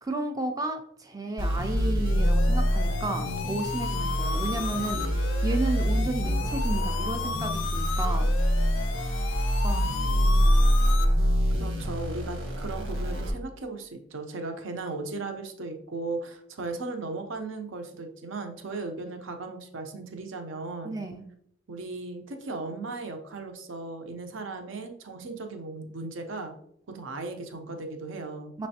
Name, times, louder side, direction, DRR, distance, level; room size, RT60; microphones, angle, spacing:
voice 1, 0.0-5.0 5.4-8.3 9.6-10.1 20.8-21.2 28.6-28.7, right 2 dB, 15° right, 6 dB, 0.4 m, -32 dB
sound 1, 1.4-13.3, equal, 85° right, 1.2 m, -25 dB
sound 2, 2.0-11.0, left 6 dB, 65° left, 0.4 m, -35 dB
voice 2, 11.6-21.0 21.7-26.5 26.9-28.5, right 3 dB, 70° right, 5 dB, 0.6 m, -36 dB
6.0 x 3.1 x 2.8 m, 0.69 s
head